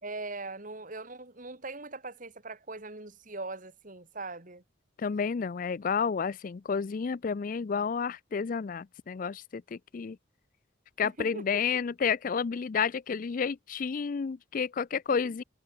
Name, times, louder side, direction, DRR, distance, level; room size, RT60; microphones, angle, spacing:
voice 1, 0.0-4.6 11.2-11.6 15.1-15.2, right 3 dB, 40° right, 2.8 m, -41 dB
voice 2, 5.0-10.2 11.0-15.4, left 6 dB, 45° left, 0.4 m, -31 dB
head